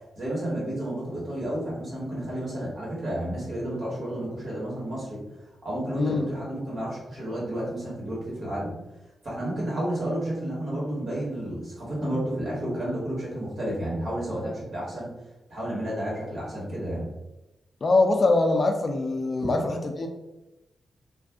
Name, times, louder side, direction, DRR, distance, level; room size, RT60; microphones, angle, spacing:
voice 1, 0.2-5.2 5.6-8.7 9.2-15.1 15.5-17.1, right 1 dB, 45° right, -6 dB, 1.5 m, -31 dB
voice 2, 17.8-20.1, left 2 dB, 35° left, 4 dB, 0.3 m, -23 dB
2.5 x 2.4 x 3.5 m, 0.96 s
wide cardioid pair, 155°, 0 cm